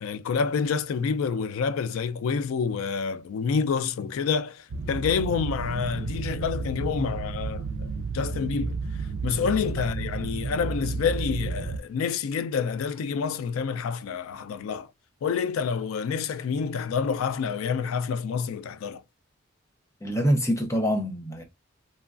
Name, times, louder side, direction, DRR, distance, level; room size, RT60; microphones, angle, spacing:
voice 1, 0.0-7.9 8.1-14.9 15.2-19.0, left 6 dB, 90° left, 0.3 m, -28 dB
sound 1, 4.7-11.8, right 4 dB, 70° right, 0.4 m, -32 dB
voice 2, 20.0-21.4, equal, 15° left, 0.5 m, -25 dB
3.0 x 2.3 x 2.3 m
head